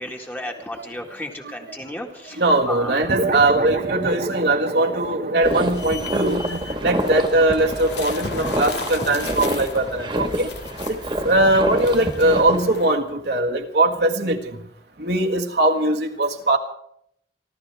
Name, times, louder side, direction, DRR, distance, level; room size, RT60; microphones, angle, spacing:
voice 1, 0.0-2.4 2.7-3.0, left 1 dB, 10° left, 2 dB, 1.8 m, -33 dB
voice 2, 2.4-10.5 10.9-11.0 11.3-14.6 15.0-16.6, right 2 dB, 75° right, 2 dB, 1.8 m, -20 dB
sound 1, 3.0-7.8, right 2 dB, 45° right, 0.9 m, -29 dB
sound 2, 5.4-13.0, left 4 dB, 85° left, 1.8 m, -36 dB
sound 3, 5.4-12.6, equal, 25° right, 1.7 m, -27 dB
28.5 x 13.0 x 3.5 m, 0.70 s
head